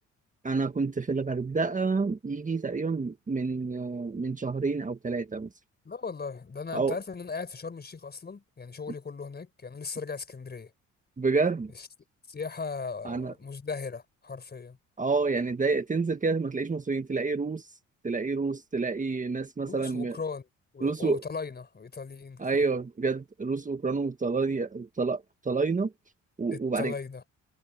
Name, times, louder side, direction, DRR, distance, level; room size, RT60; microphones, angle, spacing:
voice 1, 0.4-5.5 6.7-7.0 11.2-11.7 13.0-13.3 15.0-17.7 18.0-20.2 20.8-21.2 22.4-25.9 26.4-26.9, right 4 dB, 25° right, 1.6 m, -28 dB
voice 2, 5.8-10.7 11.7-11.9 12.3-14.8 19.6-20.5 20.7-22.6 26.5-27.2, left 5 dB, 35° left, 4.6 m, -38 dB
cardioid pair, 90°, 30 cm